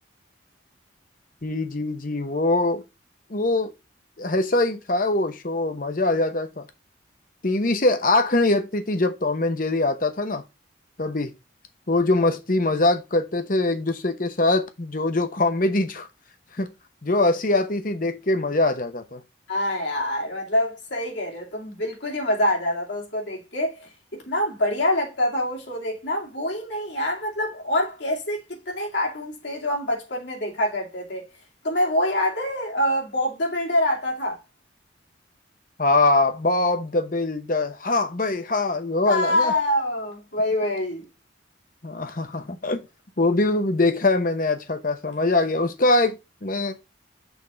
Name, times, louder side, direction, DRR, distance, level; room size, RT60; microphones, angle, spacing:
voice 1, 1.4-2.8 3.3-3.7 4.2-6.7 7.4-10.4 11.0-11.3 11.9-16.1 16.6-16.7 17.0-19.2 35.8-39.5 41.8-42.8 43.2-46.7, left 2 dB, 45° left, 0.9 m, -23 dB
voice 2, 19.5-31.3 31.6-34.4 39.1-41.1, left 1 dB, 70° left, 2.6 m, -25 dB
6.3 x 3.6 x 4.9 m
head